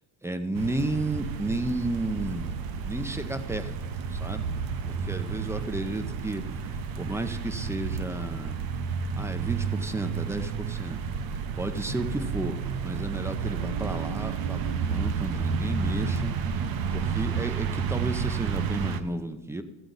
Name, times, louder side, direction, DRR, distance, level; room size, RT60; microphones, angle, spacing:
voice 1, 0.2-3.8 4.1-4.6 4.8-8.6 9.2-11.0 11.6-16.3 16.9-19.6, right 2 dB, 5° right, 10 dB, 0.4 m, -33 dB
sound 1, 0.5-19.0, right 6 dB, 45° right, 0.7 m, -31 dB
14.0 x 7.9 x 3.9 m, 1.2 s
cardioid pair, 120°, 49 cm